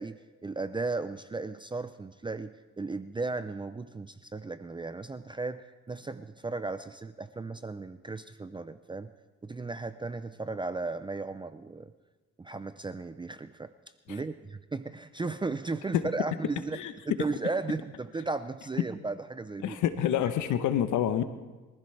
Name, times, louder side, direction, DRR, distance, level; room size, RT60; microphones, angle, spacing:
voice 1, 0.0-9.1 9.4-11.9 12.4-13.7 14.1-16.8 17.1-19.8, right 3 dB, 15° right, 11 dB, 0.5 m, -35 dB
voice 2, 19.6-21.2, left 10 dB, 80° left, 10 dB, 1.0 m, -27 dB
23.5 x 15.0 x 3.3 m, 1.2 s
cardioid pair, 90°, 30 cm